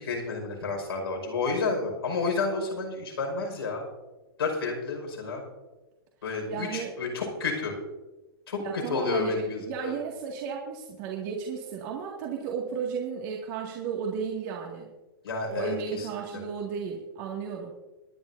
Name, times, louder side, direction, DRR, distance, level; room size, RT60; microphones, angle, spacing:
voice 1, 0.0-3.9 4.4-5.4 6.2-7.8 8.5-8.6 8.9-10.0 15.2-16.4, left 4 dB, 85° left, 1 dB, 5.5 m, -30 dB
voice 2, 6.5-6.9 8.6-14.9 15.5-17.7, right 6 dB, 50° right, -1 dB, 2.2 m, -34 dB
26.5 x 9.8 x 2.8 m, 1.1 s
hypercardioid pair, 115°, 13 cm